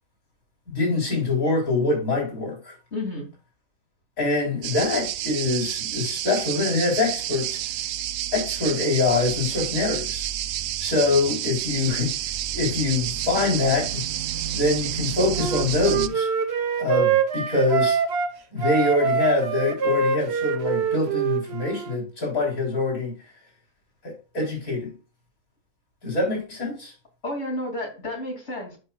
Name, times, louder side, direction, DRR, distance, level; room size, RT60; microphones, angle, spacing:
voice 1, 0.7-2.8 4.2-7.6 8.3-10.3 10.8-12.1 12.5-14.0 14.5-16.3 16.8-18.0 18.5-23.1 24.0-24.9 26.0-26.9, left 3 dB, 85° left, 4.2 m, -24 dB
voice 2, 2.9-3.3 27.2-28.8, left 1 dB, 55° left, 3.1 m, -31 dB
sound 1, 4.6-16.1, right 12 dB, 90° right, 1.0 m, -29 dB
Wind instrument woodwind instrument, 15.4-18.3 18.6-22.0, right 6 dB, 55° right, 1.1 m, -24 dB
11.5 x 6.2 x 2.3 m
omnidirectional pair, 1.4 m